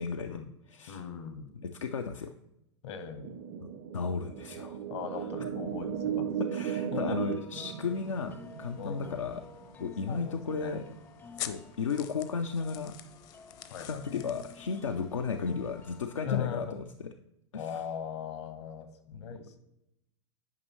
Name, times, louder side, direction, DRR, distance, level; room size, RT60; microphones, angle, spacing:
voice 1, 0.0-0.4 0.7-1.0 1.6-2.3 3.6-3.7 3.9-4.8 5.4-5.5 6.5-9.4 9.8-11.0 11.4-12.9 13.9-17.1 17.5-17.8 19.1-19.2, left 5 dB, 90° left, 5 dB, 0.4 m, -34 dB
voice 2, 0.9-1.5 2.8-3.4 4.9-6.3 6.9-7.2 8.8-9.3 10.0-10.8 13.7-14.3 15.3-15.6 16.2-16.8 17.5-19.6, left 8 dB, 65° left, 9 dB, 1.1 m, -39 dB
sound 1, 3.2-10.1, right 9 dB, 55° right, 0.5 m, -36 dB
sound 2, 7.2-16.4, left 4 dB, 15° left, 0.4 m, -53 dB
sound 3, 7.8-16.1, left 12 dB, 50° left, 0.7 m, -48 dB
9.5 x 5.3 x 3.0 m, 0.85 s
hypercardioid pair, 95°, 16 cm